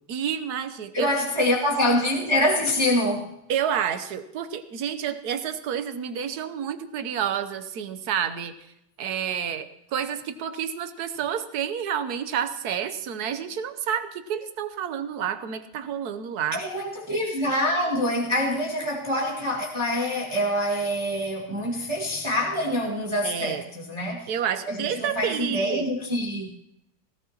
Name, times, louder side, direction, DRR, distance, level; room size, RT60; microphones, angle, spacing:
voice 1, 0.1-1.1 3.5-8.5 9.0-16.6 23.2-23.6 24.3-25.9, right 8 dB, 60° right, 1.1 m, -29 dB
voice 2, 0.9-3.3 16.5-24.3 24.7-26.5, left 1 dB, 15° right, 1.7 m, -25 dB
17.5 x 17.5 x 2.9 m
omnidirectional pair, 2.4 m